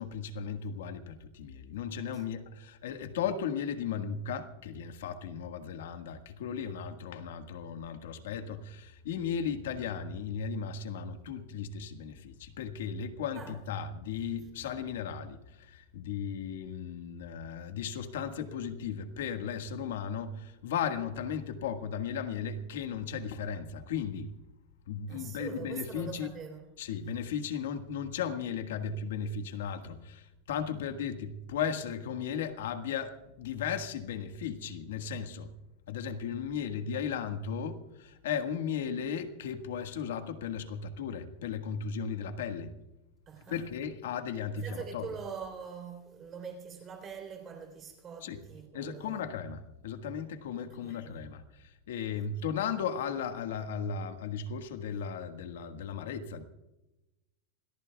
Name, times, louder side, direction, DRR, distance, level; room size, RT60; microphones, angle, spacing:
voice 1, 0.0-24.3 24.9-26.4 26.8-35.5 35.9-42.8 43.5-45.2 48.2-48.5 48.7-56.4, left 7 dB, 80° left, 1.6 m, -36 dB
voice 2, 25.1-26.6 43.3-43.6 44.5-49.2 50.8-51.1, right 6 dB, 20° right, 3.4 m, -43 dB
27.5 x 18.0 x 2.3 m
supercardioid pair, 175°, 0 cm